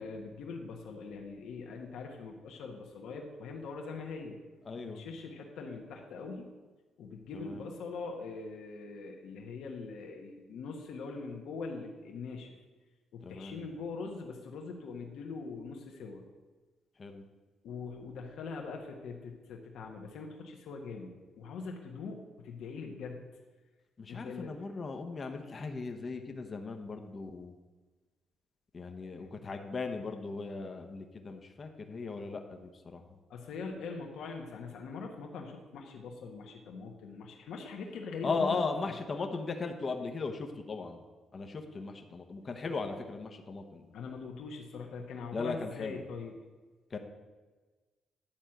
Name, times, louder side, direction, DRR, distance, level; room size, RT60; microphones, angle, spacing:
voice 1, 0.0-4.4 4.8-6.5 7.0-12.6 13.1-16.2 17.6-21.1 21.4-23.2 24.1-24.5 29.2-29.3 33.3-38.7 43.9-46.3, left 4 dB, 75° left, 1 dB, 1.3 m, -42 dB
voice 2, 4.6-5.0 7.3-7.7 13.2-13.6 17.0-17.2 24.0-27.5 28.7-33.0 38.2-41.0 41.3-43.9 45.3-46.0 46.9-47.0, left 4 dB, 35° left, 4 dB, 1.0 m, -37 dB
10.5 x 4.4 x 7.7 m, 1.3 s
cardioid pair, 90°, 0 cm